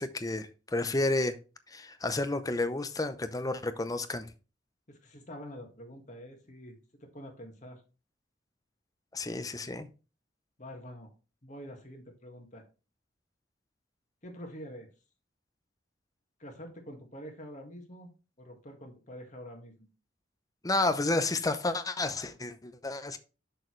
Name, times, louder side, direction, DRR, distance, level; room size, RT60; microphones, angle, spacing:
voice 1, 0.0-1.4 1.7-4.3 9.1-9.9 20.6-23.2, left 2 dB, 20° left, 0.6 m, -31 dB
voice 2, 4.9-7.8 10.6-11.1 11.4-12.6 14.2-14.9 16.4-18.1 18.4-19.9, equal, 40° left, 1.8 m, -46 dB
6.7 x 6.4 x 3.2 m
head